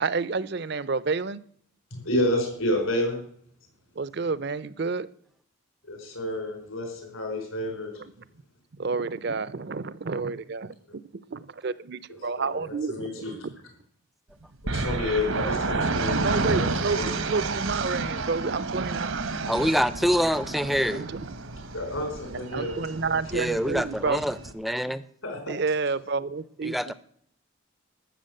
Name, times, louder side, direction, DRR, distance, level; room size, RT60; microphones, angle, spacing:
voice 1, 0.0-1.4 4.0-5.1 8.7-10.8 11.3-13.5 14.8-15.0 16.0-19.3 20.9-21.3 22.3-24.2 25.5-26.9, right 4 dB, 50° right, 18 dB, 0.5 m, -30 dB
voice 2, 1.9-3.2 5.8-7.9 12.4-13.3 14.6-17.0 21.7-22.7 25.2-25.5, left 1 dB, 80° left, 2 dB, 4.3 m, -30 dB
sound 1, 14.7-24.5, right 3 dB, 75° right, 1.1 m, -30 dB
voice 3, 19.5-21.1 23.3-25.0 26.6-26.9, equal, ahead, 15 dB, 0.4 m, -25 dB
13.0 x 7.0 x 7.8 m, 0.63 s
head